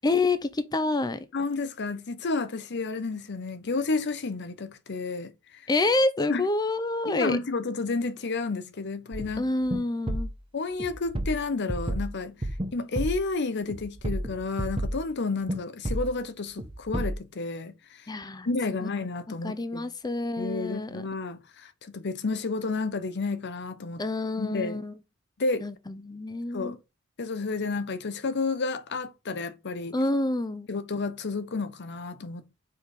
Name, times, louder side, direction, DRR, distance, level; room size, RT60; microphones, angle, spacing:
voice 1, 0.0-1.3 5.7-7.4 9.4-10.3 18.1-18.5 18.8-18.9 19.4-21.1 24.0-24.9 25.6-26.8 29.9-30.7, left 2 dB, 20° left, 0.5 m, -27 dB
voice 2, 1.3-5.6 6.3-6.5 7.0-9.4 10.5-12.3 12.7-18.0 18.5-19.9 20.4-24.0 24.4-24.8 25.4-25.7 26.5-26.8 27.2-30.0 30.7-32.5, left 3 dB, 55° left, 0.7 m, -31 dB
sound 1, 9.1-9.4 9.7-9.8 10.1-10.4 10.8-12.7 13.0-13.3 13.7-15.1 15.5-15.6 15.8-16.2 16.6-17.1, right 1 dB, 25° right, 1.0 m, -31 dB
4.8 x 4.6 x 5.1 m
head